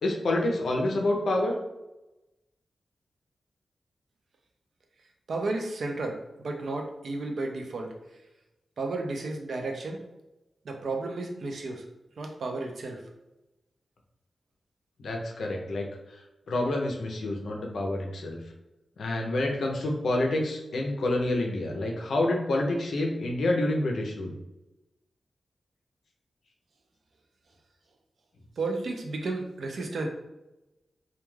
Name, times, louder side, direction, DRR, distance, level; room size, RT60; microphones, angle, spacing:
voice 1, 0.0-1.6 15.0-15.9 16.5-18.4 19.0-24.3, left 1 dB, 85° left, 0 dB, 0.5 m, -28 dB
voice 2, 5.3-8.0 8.8-10.0 10.6-11.9 12.2-13.1 28.6-30.1, right 3 dB, 70° right, 3 dB, 0.4 m, -33 dB
2.2 x 2.2 x 3.1 m, 0.98 s
wide cardioid pair, 145°, 0 cm